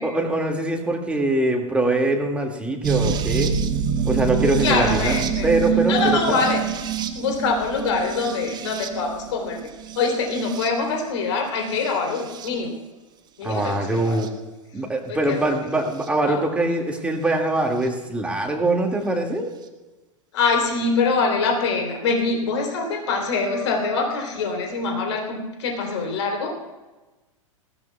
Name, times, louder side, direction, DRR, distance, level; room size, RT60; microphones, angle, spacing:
voice 1, 0.0-3.5 4.0-6.4 13.4-14.3 14.7-19.5, right 2 dB, 5° right, 1 dB, 2.1 m, -23 dB
sound 1, 2.8-11.0 11.7-12.5 13.6-14.3 16.0-16.1 17.8-17.9, right 7 dB, 25° right, 1.0 m, -26 dB
voice 2, 4.6-5.5 5.9-6.6 7.1-9.6 9.9-12.8 13.4-14.2 15.1-15.4 16.2-16.4 20.3-26.5, left 4 dB, 60° left, 2 dB, 3.4 m, -24 dB
19.5 x 16.0 x 2.3 m, 1.1 s
figure-of-eight pair, 95°, 17 cm